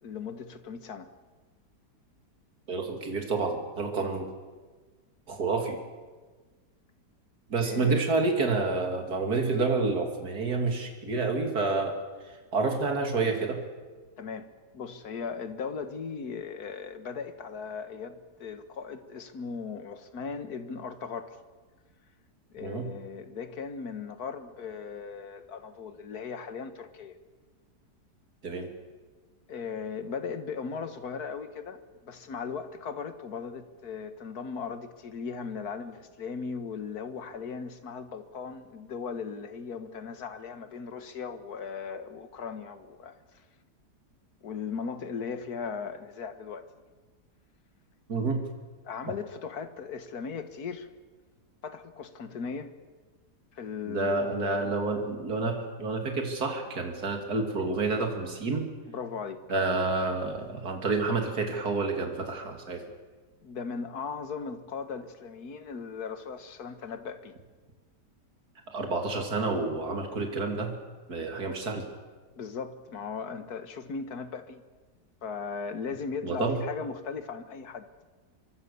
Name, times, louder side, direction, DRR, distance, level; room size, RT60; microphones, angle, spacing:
voice 1, 0.0-1.1 4.0-4.1 7.6-8.0 14.2-14.5 14.7-21.4 22.5-27.2 29.5-43.4 44.4-46.7 48.8-50.9 51.6-52.7 53.5-54.7 58.9-59.4 63.4-67.3 72.4-74.6 75.2-77.9, left 5 dB, 65° left, 10 dB, 2.0 m, -38 dB
voice 2, 2.7-4.3 5.3-5.8 7.5-12.0 12.5-13.6 22.6-22.9 28.4-28.7 48.1-48.4 53.9-58.7 59.5-62.8 68.7-70.7 71.1-71.8 76.2-76.6, right 3 dB, 65° right, 4 dB, 3.3 m, -29 dB
24.5 x 24.0 x 7.0 m, 1.4 s
omnidirectional pair, 1.8 m